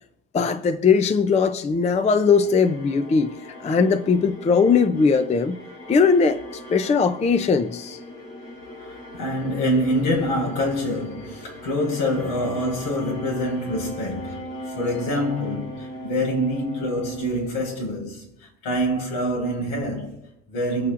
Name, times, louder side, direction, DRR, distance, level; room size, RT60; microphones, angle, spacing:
voice 1, 0.3-3.3 3.6-5.6 5.9-6.4 6.7-8.0, left 5 dB, 20° left, 0.4 m, -19 dB
sound 1, 2.0-18.2, equal, 45° left, 3.4 m, -39 dB
voice 2, 8.8-18.3 18.6-20.9, equal, 80° left, 4.9 m, -26 dB
24.5 x 8.2 x 2.5 m
cardioid pair, 150°, 36 cm